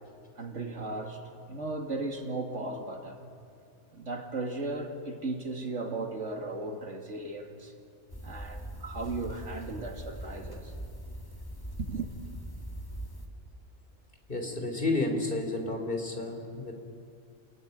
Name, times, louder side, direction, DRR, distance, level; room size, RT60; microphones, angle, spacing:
voice 1, 0.4-1.2 1.5-3.3 3.9-7.7 8.2-10.7 11.8-12.1, right 2 dB, 85° right, 2.7 m, -36 dB
sound 1, 8.1-13.3, equal, 20° left, 2.1 m, -41 dB
voice 2, 14.3-16.7, left 2 dB, 50° left, 3.7 m, -31 dB
28.5 x 21.0 x 9.4 m
omnidirectional pair, 1.2 m